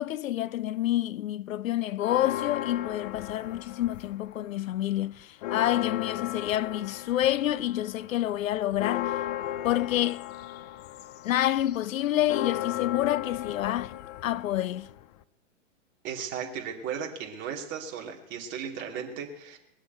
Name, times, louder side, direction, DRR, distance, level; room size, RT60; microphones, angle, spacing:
voice 1, 0.0-9.1 9.6-10.2 11.2-14.9, left 13 dB, 80° left, 0.6 m, -28 dB
sound 1, 2.0-4.4 4.7-15.2, left 13 dB, 30° left, 0.5 m, -36 dB
voice 2, 16.0-19.6, right 7 dB, 30° right, 2.8 m, -36 dB
20.5 x 8.2 x 8.2 m
hypercardioid pair, 140°, 40 cm